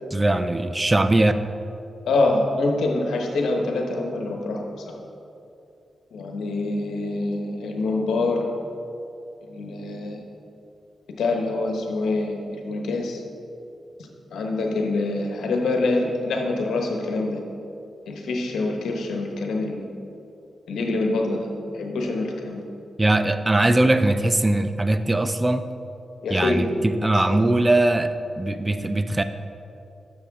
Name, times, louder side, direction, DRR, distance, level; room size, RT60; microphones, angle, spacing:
voice 1, 0.1-1.3 23.0-25.7 26.3-29.2, right 2 dB, 20° right, 10 dB, 0.4 m, -21 dB
voice 2, 2.1-4.7 6.1-8.4 9.5-10.2 11.2-13.2 14.0-17.4 18.1-19.9 20.7-21.5 21.7-22.6 26.2-26.8, left 2 dB, 90° left, 2 dB, 1.1 m, -25 dB
11.0 x 6.9 x 3.7 m, 2.7 s
cardioid pair, 80°, 0 cm